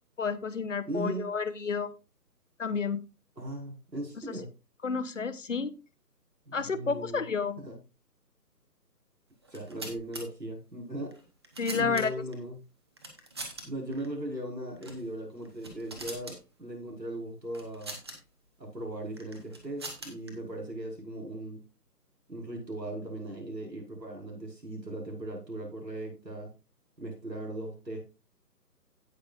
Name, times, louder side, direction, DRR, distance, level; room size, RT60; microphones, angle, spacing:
voice 1, 0.2-1.9 2.6-3.0 4.8-5.7 6.5-7.6 11.6-12.1, left 5 dB, 50° left, 14 dB, 1.0 m, -30 dB
voice 2, 0.9-1.3 3.4-4.5 6.5-7.2 7.6-7.8 9.5-11.1 11.7-12.6 13.6-18.0 18.6-21.6 22.3-26.5 27.0-28.0, right 1 dB, 90° right, 0 dB, 5.4 m, -38 dB
sound 1, 9.4-10.2 11.1-12.3 13.0-13.6 13.9-14.1 14.8-15.0 15.4-16.4 17.5-18.2 19.2-20.3, right 2 dB, 15° right, 0.9 m, -42 dB
16.5 x 5.9 x 2.5 m, 0.30 s
figure-of-eight pair, 150°, 49 cm